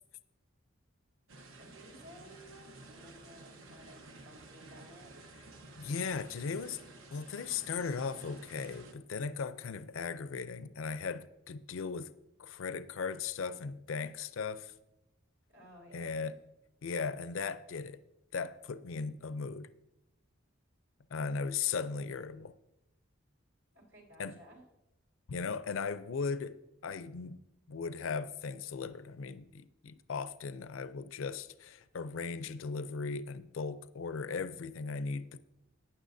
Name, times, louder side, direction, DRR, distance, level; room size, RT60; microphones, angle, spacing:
sound 1, 1.3-8.9, right 2 dB, 90° right, 1.1 m, -53 dB
voice 1, 1.6-4.0 4.2-5.1 15.5-16.3 23.7-24.6, equal, 70° right, 3.8 m, -56 dB
voice 2, 5.8-6.8 7.1-12.1 12.4-14.7 15.9-16.4 16.8-18.0 18.3-19.7 21.1-22.5 24.2-24.4 25.3-26.6 26.8-27.4 27.7-35.4, left 5 dB, 75° left, 0.5 m, -37 dB
15.0 x 9.7 x 2.7 m
head